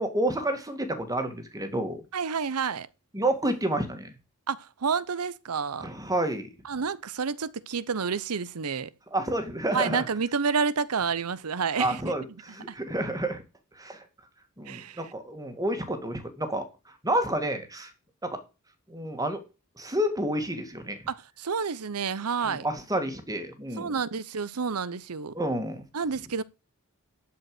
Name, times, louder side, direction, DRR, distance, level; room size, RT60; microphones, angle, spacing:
voice 1, 0.0-2.0 3.1-4.1 5.8-6.5 9.1-10.0 11.8-13.4 13.8-14.0 14.6-16.7 17.0-17.9 18.2-18.4 18.9-19.4 19.8-21.0 22.4-23.9 25.3-25.8, right 1 dB, 15° right, 2.1 m, -29 dB
voice 2, 2.1-2.9 4.5-5.9 6.6-8.9 9.7-12.1 12.7-12.8 14.7-15.0 21.1-22.7 23.8-25.3 25.9-26.4, right 5 dB, 90° right, 0.8 m, -29 dB
12.0 x 5.2 x 7.8 m
head